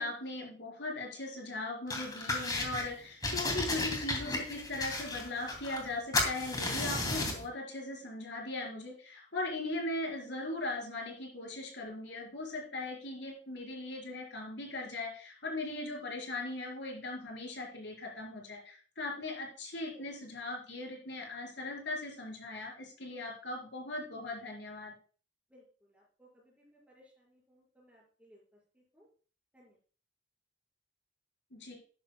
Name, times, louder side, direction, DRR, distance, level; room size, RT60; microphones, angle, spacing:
voice 1, 0.0-24.9 31.5-31.7, left 2 dB, 75° left, -1 dB, 4.9 m, -39 dB
sound 1, 1.9-2.9 3.2-5.9 6.1-7.5, left 2 dB, 20° left, 2.7 m, -34 dB
voice 2, 25.9-26.5 26.9-28.4 28.9-29.1 29.5-29.7, equal, 5° right, -3 dB, 5.3 m, -61 dB
14.0 x 11.5 x 2.3 m, 0.40 s
head